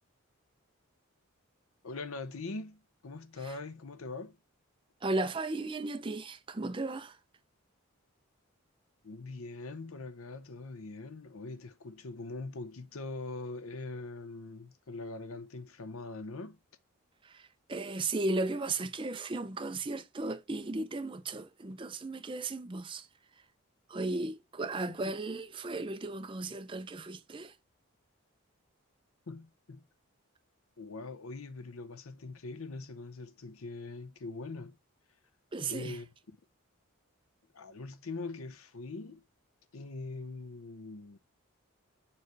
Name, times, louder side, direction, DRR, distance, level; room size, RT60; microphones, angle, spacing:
voice 1, 1.8-4.4 9.0-16.6 24.9-25.0 29.3-29.8 30.8-34.8 35.6-36.4 37.5-39.2 39.7-41.2, left 3 dB, 75° left, 0.8 m, -42 dB
voice 2, 5.0-7.2 17.2-23.1 23.9-27.5 35.5-36.0, right 2 dB, 25° right, 0.5 m, -35 dB
6.9 x 3.2 x 4.6 m
head